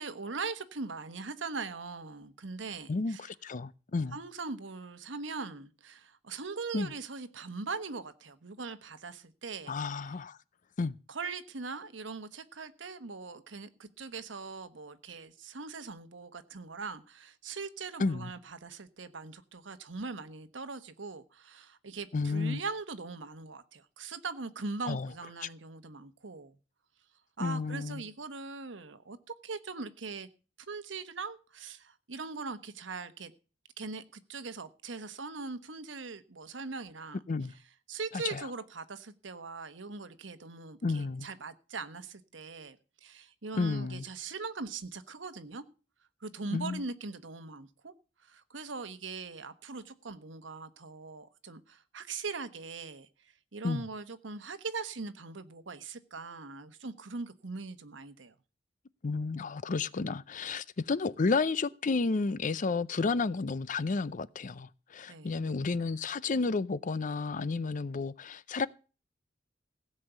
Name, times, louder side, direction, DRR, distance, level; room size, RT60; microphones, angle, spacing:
voice 1, 0.0-3.3 4.1-10.2 11.1-26.6 27.4-29.2 29.4-30.3 30.7-33.3 33.8-37.2 37.5-37.6 37.9-45.6 46.2-47.9 48.2-53.1 53.5-58.3 65.1-65.4, right 4 dB, 80° right, 1.1 m, -41 dB
voice 2, 2.9-4.2 6.7-6.9 9.7-10.4 10.8-11.0 18.0-18.3 22.1-22.6 24.9-25.1 27.4-28.0 37.3-37.5 38.3-38.4 40.8-41.3 43.6-44.0 46.5-46.8 53.6-53.8 59.0-68.7, left 4 dB, 45° left, 0.5 m, -31 dB
16.5 x 5.5 x 8.1 m
head